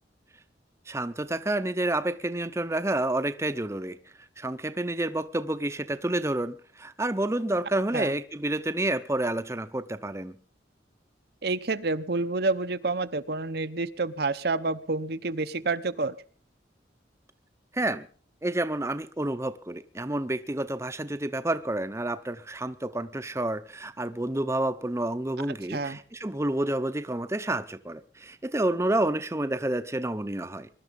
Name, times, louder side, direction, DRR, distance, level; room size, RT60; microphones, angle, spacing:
voice 1, 0.9-4.0 4.4-10.3 17.7-18.1 18.4-30.7, right 1 dB, 15° right, 0.7 m, -29 dB
voice 2, 11.4-16.2 25.7-26.0, right 3 dB, 60° right, 0.8 m, -28 dB
22.0 x 12.0 x 5.3 m
head